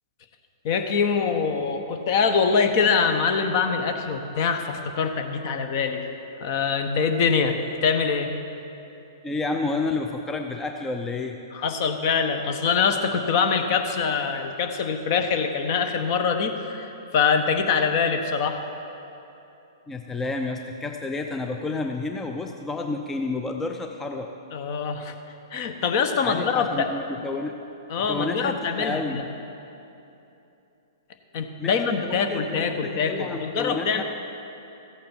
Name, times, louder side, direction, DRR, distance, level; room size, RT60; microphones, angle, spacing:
voice 1, 0.6-6.0 6.4-8.3 11.5-18.6 24.5-25.2 25.5-26.9 27.9-29.2 31.3-34.0, left 5 dB, 45° left, 7 dB, 1.0 m, -24 dB
voice 2, 9.2-11.4 19.9-24.3 26.2-27.6 28.0-29.2 31.6-34.0, left 3 dB, 10° left, 4 dB, 0.5 m, -30 dB
14.5 x 8.4 x 4.4 m, 2.9 s
figure-of-eight pair, 120°, 2 cm